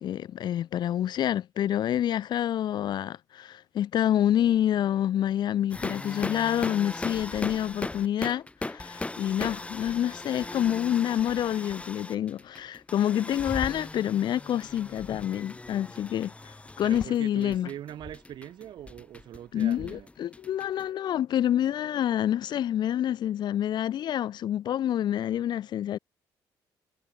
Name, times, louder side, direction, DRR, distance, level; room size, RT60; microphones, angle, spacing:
voice 1, 0.0-17.7 19.5-26.0, left 11 dB, 60° left, 0.8 m, -27 dB
sound 1, 5.7-20.8, left 2 dB, 15° left, 1.5 m, -38 dB
voice 2, 16.8-20.1, right 11 dB, 65° right, 3.9 m, -42 dB
cardioid pair, 95°, 8 cm